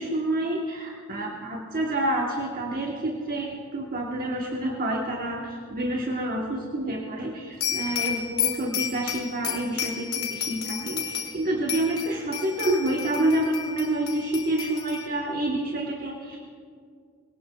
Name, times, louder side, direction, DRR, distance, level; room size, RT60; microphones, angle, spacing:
voice 1, 0.0-16.4, right 1 dB, 40° right, 0 dB, 1.2 m, -28 dB
sound 1, 7.6-11.4 11.7-15.1, left 9 dB, 80° left, 2.1 m, -31 dB
22.0 x 18.5 x 2.3 m, 2.1 s
head